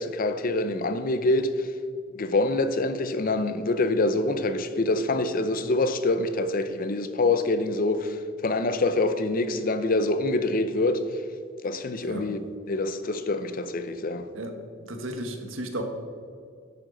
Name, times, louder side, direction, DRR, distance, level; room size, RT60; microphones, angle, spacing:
voice 1, 0.0-1.7 2.1-11.1 11.6-12.4 12.7-14.3, left 2 dB, 45° left, 0.6 m, -25 dB
voice 2, 14.9-15.8, right 1 dB, 80° right, 1.3 m, -34 dB
11.0 x 8.9 x 3.9 m
head